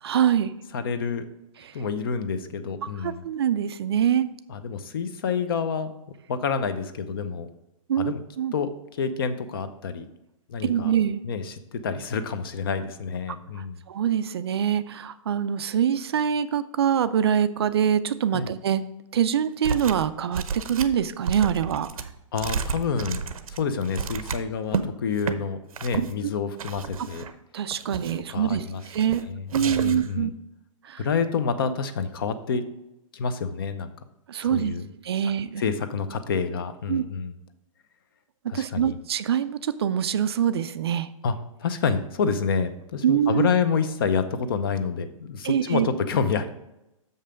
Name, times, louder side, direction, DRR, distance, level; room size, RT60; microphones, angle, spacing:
voice 1, 0.0-0.5 1.6-1.7 3.0-4.3 7.9-8.5 10.6-11.2 13.9-18.8 19.1-21.9 25.9-26.3 27.5-29.2 29.5-30.3 30.8-31.1 34.3-34.7 35.0-35.6 36.9-37.0 38.5-41.1 43.0-43.5 45.4-45.9, right 9 dB, 45° right, 13 dB, 0.4 m, -24 dB
voice 2, 0.7-1.2 1.7-3.2 4.5-6.0 6.3-7.5 8.0-8.2 8.5-8.7 9.0-10.1 10.5-10.9 11.2-13.8 18.3-18.5 22.3-27.2 27.9-28.0 28.3-28.8 29.2-30.3 31.0-32.6 33.1-33.9 34.5-34.8 35.6-37.3 38.5-39.0 41.2-46.5, left 5 dB, 40° left, 11 dB, 0.6 m, -28 dB
sound 1, 19.6-20.1 20.3-24.8 25.2-25.4 25.7-26.1 26.6-27.3 27.7-28.3 28.8-29.2 29.5-30.1, right 6 dB, 85° right, 0.8 m, -32 dB
6.7 x 5.5 x 5.0 m, 0.90 s
hypercardioid pair, 170°, 18 cm